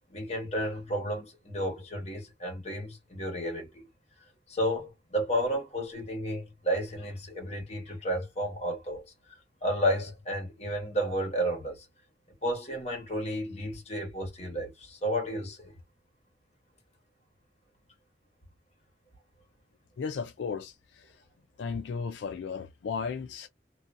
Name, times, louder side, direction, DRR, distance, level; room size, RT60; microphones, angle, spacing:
voice 1, 0.1-3.9 4.5-9.1 9.6-11.9 12.4-15.7, equal, 35° left, 1.2 m, -32 dB
voice 2, 20.0-21.0 21.6-23.5, left 5 dB, 80° left, 0.4 m, -35 dB
2.6 x 2.2 x 2.5 m
head